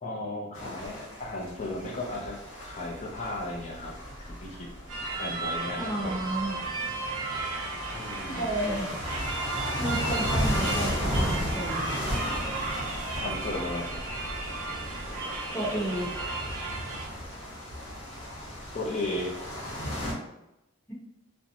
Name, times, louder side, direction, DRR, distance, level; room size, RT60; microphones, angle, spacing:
voice 1, 0.0-3.9 4.3-4.7 5.1-6.4 7.9-8.5 13.2-13.9 18.7-19.4, left 2 dB, 35° left, -2 dB, 0.4 m, -35 dB
sound 1, 0.5-20.1, equal, 65° left, 1.1 m, -35 dB
sound 2, 4.9-17.1, right 3 dB, 90° right, 0.6 m, -34 dB
voice 2, 5.8-6.5 8.3-8.9 9.8-12.0 15.5-16.1 20.9-21.0, right 1 dB, 10° left, -8 dB, 0.9 m, -31 dB
2.5 x 2.1 x 2.7 m, 0.91 s
head